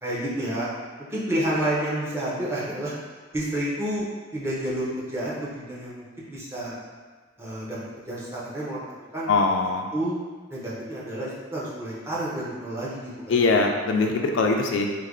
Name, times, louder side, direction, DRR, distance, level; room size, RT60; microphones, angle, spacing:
voice 1, 0.0-0.7 1.1-2.9 3.3-6.8 7.4-7.8 8.1-8.8 9.1-9.4 9.9-10.2 10.5-13.3, right 1 dB, 15° right, -7 dB, 0.6 m, -29 dB
voice 2, 9.3-9.9 13.3-15.0, left 3 dB, 75° left, 2 dB, 0.4 m, -22 dB
3.2 x 2.1 x 3.6 m, 1.5 s
head